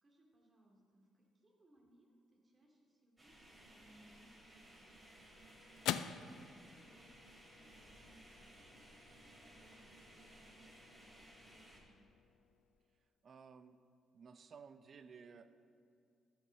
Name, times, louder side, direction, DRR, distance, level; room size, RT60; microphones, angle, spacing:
voice 1, 0.0-5.1 5.6-12.1, right 1 dB, 30° right, -1 dB, 2.5 m, -70 dB
sound 1, 3.2-11.8, right 1 dB, 15° right, 3.0 m, -60 dB
sound 2, 4.6-13.1, left 11 dB, 90° left, 0.3 m, -48 dB
voice 2, 13.2-13.8 14.1-15.7, right 6 dB, 50° right, 11 dB, 0.6 m, -56 dB
13.0 x 5.5 x 7.0 m, 2.5 s
cardioid pair, 90°, 0 cm